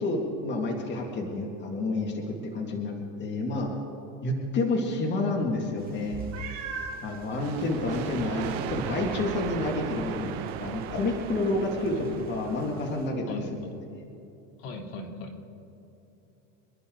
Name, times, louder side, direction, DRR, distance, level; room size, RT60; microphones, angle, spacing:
voice 1, 0.0-3.7 4.2-6.2 7.0-10.3 10.6-12.0 12.3-13.4, left 2 dB, 30° left, 0 dB, 2.3 m, -29 dB
sound 1, 5.8-13.1, right 3 dB, 25° right, 2.4 m, -47 dB
Meow, 6.3-7.0 7.8-7.9 8.4-8.5 12.5-12.6, right 5 dB, 45° right, 4.1 m, -37 dB
sound 2, 7.3-12.9, right 9 dB, 65° right, 1.6 m, -36 dB
voice 2, 11.7-12.2 13.3-13.7 14.6-15.4, left 2 dB, 70° left, 0 dB, 3.2 m, -39 dB
27.0 x 11.5 x 3.9 m, 3.0 s
supercardioid pair, 140°, 37 cm